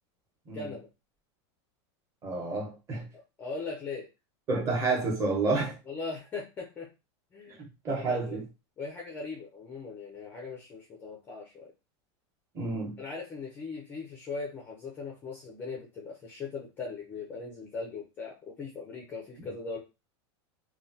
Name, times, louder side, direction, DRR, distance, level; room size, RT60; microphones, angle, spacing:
voice 1, 0.5-0.9 3.1-4.1 5.9-6.9 7.3-7.6 7.9-8.4 8.8-11.7 13.0-19.8, left 4 dB, 15° left, 0.4 m, -39 dB
voice 2, 2.2-3.1 4.5-5.8 7.5-7.6 7.8-8.4 12.5-13.0, right 3 dB, 20° right, 0.8 m, -29 dB
3.0 x 2.2 x 2.7 m
supercardioid pair, 175°, 14 cm